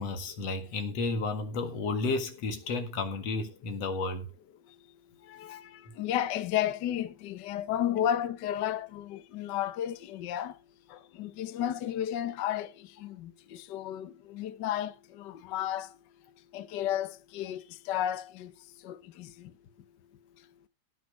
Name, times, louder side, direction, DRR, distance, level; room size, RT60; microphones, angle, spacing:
voice 1, 0.0-4.3, left 3 dB, 60° left, 2.9 m, -32 dB
voice 2, 5.2-10.6 10.9-15.9 16.5-18.5 18.8-19.5, left 11 dB, 90° left, 0.9 m, -33 dB
17.0 x 6.6 x 5.0 m
omnidirectional pair, 3.3 m